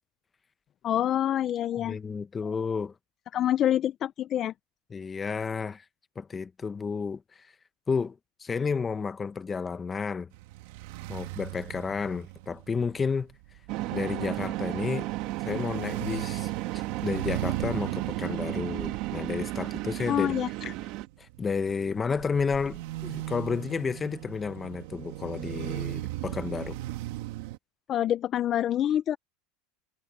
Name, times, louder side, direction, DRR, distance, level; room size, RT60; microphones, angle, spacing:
voice 1, 0.8-2.0 3.3-4.5 20.1-20.7 27.9-29.2, left 11 dB, 35° left, 0.6 m, -26 dB
voice 2, 1.8-2.9 4.9-5.8 6.2-7.5 7.9-10.3 11.1-13.3 13.9-15.1 15.5-20.3 21.2-26.8, left 5 dB, 20° left, 1.0 m, -31 dB
sound 1, 10.3-27.6, right 16 dB, 70° right, 1.9 m, -38 dB
sound 2, 13.7-21.1, right 18 dB, 55° right, 1.7 m, -33 dB
supercardioid pair, 145°, 0 cm